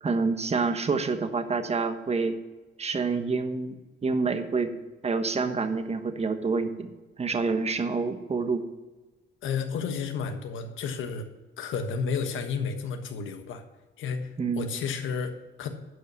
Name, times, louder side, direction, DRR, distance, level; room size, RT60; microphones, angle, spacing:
voice 1, 0.0-2.4 2.8-3.7 4.0-4.7 5.0-6.9 7.2-8.6 14.4-14.7, right 4 dB, 30° right, 8 dB, 1.2 m, -27 dB
voice 2, 9.4-11.3 11.6-13.6 14.0-15.7, left 5 dB, 80° left, 7 dB, 1.3 m, -32 dB
11.5 x 5.4 x 6.9 m, 1.2 s
cardioid pair, 90°, 20 cm